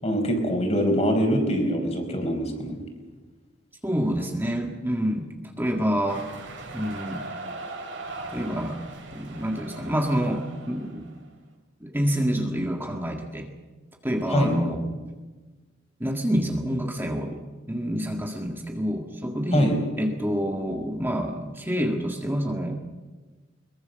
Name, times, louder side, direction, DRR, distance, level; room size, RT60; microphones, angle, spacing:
voice 1, 0.0-2.8 14.3-14.5 19.5-19.8, equal, 35° left, 4 dB, 4.9 m, -24 dB
voice 2, 3.8-5.3 5.6-6.3 6.7-7.2 8.3-8.8 9.1-11.1 11.8-13.5 14.0-14.8 16.0-17.4 17.7-22.8, equal, 10° right, 2 dB, 1.8 m, -27 dB
sound 1, 6.1-11.2, right 2 dB, 70° right, 6.5 m, -39 dB
22.5 x 22.5 x 6.7 m, 1.3 s
head